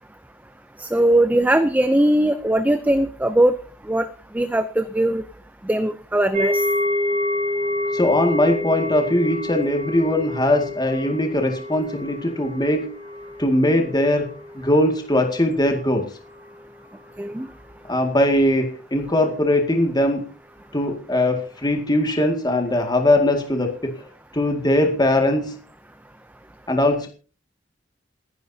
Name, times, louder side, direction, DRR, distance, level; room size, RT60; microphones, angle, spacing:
voice 1, 0.8-3.5 3.9-4.1 4.3-5.2 5.6-6.6 17.2-17.5, right 1 dB, 10° right, 11 dB, 0.6 m, -19 dB
sound 1, 6.3-15.4 15.7-16.0 16.4-16.5, left 1 dB, 40° right, 4.2 m, -28 dB
voice 2, 7.9-13.0 13.4-16.1 17.9-20.2 20.7-23.9 24.3-25.5 26.7-27.1, left 1 dB, 20° left, 3 dB, 2.1 m, -20 dB
28.5 x 10.5 x 2.8 m, 0.38 s
head